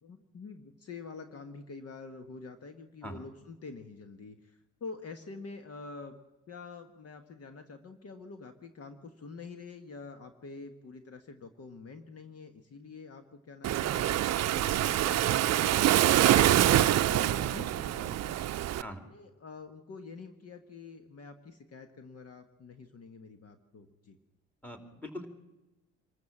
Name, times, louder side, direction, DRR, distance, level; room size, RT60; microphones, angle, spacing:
voice 1, 0.0-6.2 6.5-14.1 14.4-15.8 16.8-24.2, left 4 dB, 55° left, 7 dB, 1.6 m, -47 dB
Waves surf, 13.6-18.8, right 12 dB, 60° right, 0.6 m, -25 dB
voice 2, 24.6-25.3, equal, 5° left, 5 dB, 3.1 m, -42 dB
25.5 x 14.0 x 7.4 m, 1.1 s
cardioid pair, 90°, 30 cm